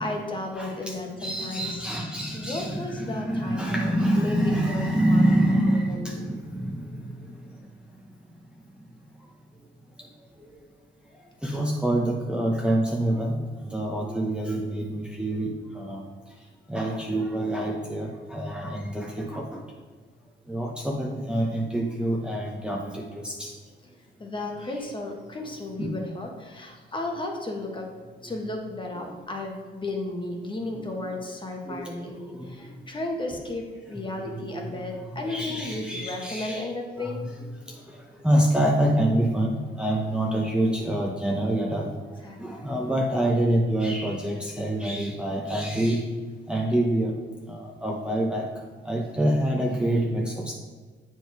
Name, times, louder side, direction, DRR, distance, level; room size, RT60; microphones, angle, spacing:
voice 1, 0.0-1.8 2.3-4.8 5.1-5.2 5.7-6.2 24.2-27.9 28.2-37.2 42.2-42.6, left 2 dB, 25° left, 1 dB, 1.3 m, -34 dB
voice 2, 0.6-7.0 11.4-13.4 13.7-16.0 16.7-19.4 20.5-23.5 25.8-25.9 30.7-30.8 31.7-31.9 32.4-32.5 34.2-34.8 35.1-36.7 37.0-37.3 38.2-41.9 42.4-46.0 46.5-47.1 47.5-48.5 48.9-50.5, right 1 dB, 5° right, -2 dB, 0.9 m, -26 dB
7.8 x 4.6 x 4.6 m, 1.5 s
cardioid pair, 90°, 20 cm